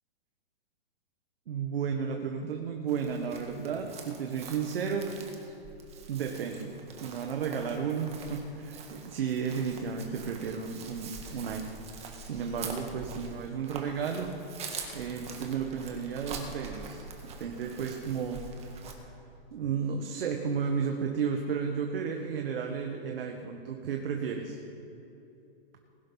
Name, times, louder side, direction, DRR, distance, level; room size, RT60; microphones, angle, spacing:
voice 1, 1.5-5.1 6.1-11.6 12.2-14.3 14.9-18.4 18.9-19.1 19.5-24.6, right 6 dB, 70° right, 3 dB, 1.5 m, -33 dB
Chirp tweet, 2.9-18.9, right 5 dB, 20° right, 1.6 m, -45 dB
20.5 x 11.5 x 4.1 m, 2.8 s
hypercardioid pair, 135°, 30 cm